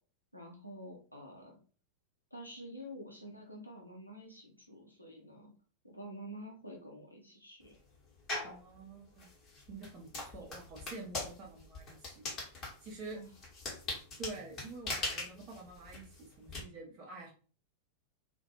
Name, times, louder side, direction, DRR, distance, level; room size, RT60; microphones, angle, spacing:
voice 1, 0.3-1.6 2.3-5.5 5.8-7.7 13.1-13.3, equal, 90° left, 0 dB, 0.6 m, -48 dB
sound 1, 8.3-8.6 9.2-16.6, left 2 dB, 30° left, 1.0 m, -41 dB
voice 2, 8.4-9.3 9.7-12.3 12.8-13.2 14.2-17.3, right 3 dB, 40° right, -2 dB, 0.6 m, -47 dB
2.3 x 2.2 x 2.8 m, 0.39 s
figure-of-eight pair, 90°, 0 cm